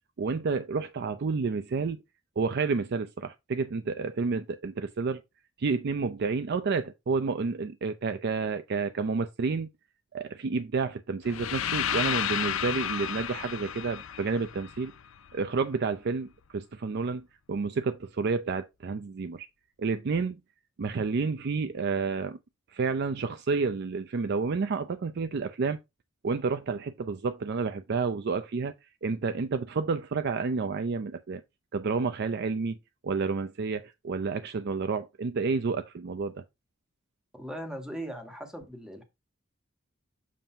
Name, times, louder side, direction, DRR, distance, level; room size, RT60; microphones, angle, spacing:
voice 1, 0.2-2.0 2.4-5.2 5.6-9.7 10.1-14.9 15.3-19.5 19.8-20.4 20.8-22.4 22.7-25.8 26.2-31.4 31.7-32.8 33.0-36.4, right 4 dB, 55° right, 0.4 m, -30 dB
sound 1, 11.3-15.3, left 9 dB, 85° left, 0.5 m, -32 dB
voice 2, 37.3-39.0, right 1 dB, 5° right, 1.3 m, -39 dB
7.3 x 2.6 x 5.4 m
head